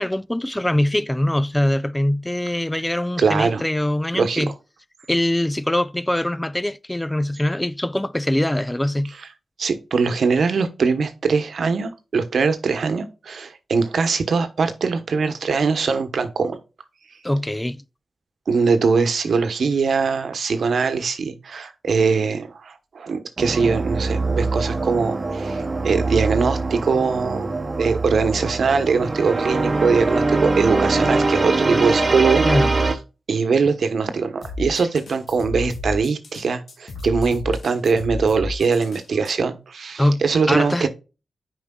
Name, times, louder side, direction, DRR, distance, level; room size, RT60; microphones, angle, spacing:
voice 1, 0.0-4.5 5.1-9.1 17.2-17.8 32.4-32.7 40.0-40.2 40.5-40.9, left 1 dB, 15° left, 0.3 m, -22 dB
voice 2, 3.2-3.6 4.1-4.4 9.6-16.6 18.5-33.0 33.3-40.9, right 5 dB, 75° right, 1.0 m, -22 dB
sound 1, 23.4-32.9, right 3 dB, 40° right, 0.9 m, -23 dB
sound 2, 34.4-39.3, left 2 dB, 70° left, 1.3 m, -32 dB
9.7 x 4.9 x 2.3 m
cardioid pair, 65°, 0 cm